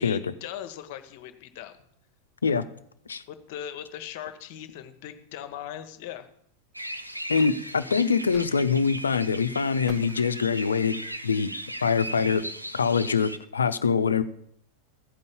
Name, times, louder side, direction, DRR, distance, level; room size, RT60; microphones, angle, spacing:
voice 1, 0.0-1.8 3.3-6.3, left 10 dB, 50° left, 9 dB, 1.1 m, -39 dB
sound 1, 6.7-13.4, equal, 90° right, 0.7 m, -38 dB
sound 2, 6.8-8.6 9.0-9.1 9.9-11.1, equal, 5° right, 1.0 m, -48 dB
voice 2, 7.3-11.5 11.8-12.4 12.7-14.2, left 5 dB, 75° left, 13 dB, 0.6 m, -24 dB
15.0 x 5.4 x 7.1 m, 0.69 s
figure-of-eight pair, 90°, 0 cm